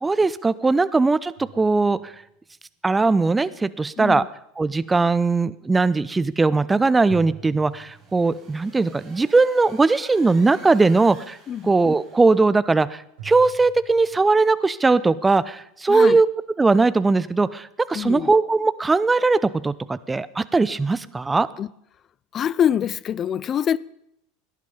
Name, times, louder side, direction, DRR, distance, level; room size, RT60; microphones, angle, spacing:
voice 1, 0.0-2.1 2.8-4.2 4.6-11.4 11.6-16.3 16.6-21.5, right 3 dB, 15° right, 0.6 m, -19 dB
sound 1, 1.4-2.5 7.1-8.6 13.2-14.3, right 9 dB, 60° right, 4.4 m, -43 dB
voice 2, 4.0-4.3 11.5-11.7 15.9-16.2 17.9-18.3 21.6-21.7 22.3-23.8, left 9 dB, 30° left, 0.4 m, -24 dB
sound 2, 7.4-12.4, right 3 dB, 35° right, 5.5 m, -50 dB
18.0 x 10.5 x 5.3 m
figure-of-eight pair, 75°, 0 cm